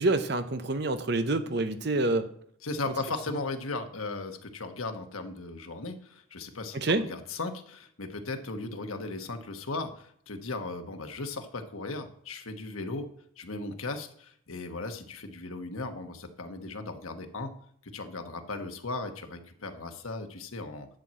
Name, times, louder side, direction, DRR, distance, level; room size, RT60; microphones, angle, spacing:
voice 1, 0.0-2.3 6.7-7.0, right 2 dB, 50° right, 10 dB, 0.8 m, -27 dB
voice 2, 2.6-13.1 13.4-17.5 17.8-20.9, left 3 dB, 90° left, 6 dB, 1.2 m, -37 dB
10.5 x 4.5 x 7.5 m, 0.64 s
head